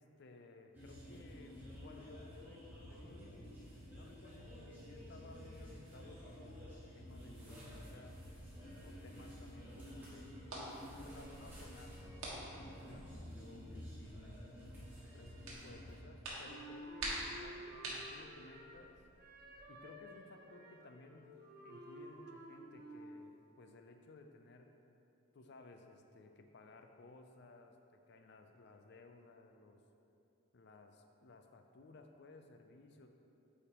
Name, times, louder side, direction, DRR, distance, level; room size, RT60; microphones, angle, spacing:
voice 1, 0.0-3.5 3.9-8.2 8.8-10.5 10.9-14.4 15.1-19.0 19.7-21.3 21.6-24.8 25.3-29.8 30.5-33.1, left 2 dB, 50° left, 5 dB, 0.4 m, -58 dB
sound 1, 0.7-16.0, equal, 10° right, 1.4 m, -51 dB
sound 2, 10.3-19.6, right 1 dB, 90° right, 1.4 m, -49 dB
Wind instrument woodwind instrument, 16.4-18.9 19.2-23.3, right 1 dB, 45° right, 0.9 m, -53 dB
8.2 x 5.0 x 2.9 m, 2.7 s
head